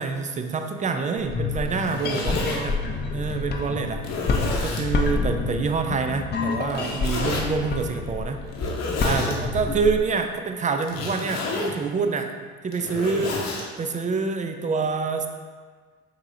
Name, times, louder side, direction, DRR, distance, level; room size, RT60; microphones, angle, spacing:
voice 1, 0.0-2.8 3.1-8.4 9.0-12.3 12.6-13.4 13.8-15.3, right 5 dB, 25° right, 6 dB, 0.4 m, -26 dB
sound 1, 1.2-10.0, left 3 dB, 35° left, 0.6 m, -28 dB
Zipper (clothing), 1.7-2.6 3.3-3.4 4.0-4.9 6.7-7.4 8.5-9.4 10.8-11.8 12.5-13.6, left 3 dB, 55° left, 0.9 m, -30 dB
5.2 x 2.8 x 2.6 m, 1.5 s
hypercardioid pair, 65°, 31 cm